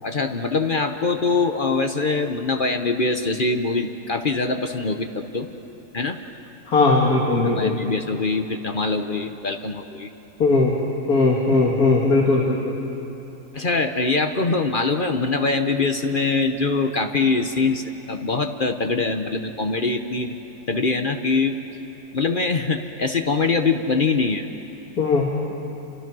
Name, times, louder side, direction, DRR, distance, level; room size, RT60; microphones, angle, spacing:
voice 1, 0.0-5.5 5.9-6.2 7.3-10.1 11.5-11.6 13.5-20.4 20.7-21.6 22.1-24.5, left 3 dB, 40° left, 6 dB, 0.8 m, -23 dB
voice 2, 6.7-7.7 10.4-10.8 11.1-12.7 25.0-25.5, left 3 dB, 55° left, -1 dB, 2.2 m, -19 dB
28.5 x 25.5 x 6.2 m, 2.9 s
omnidirectional pair, 1.9 m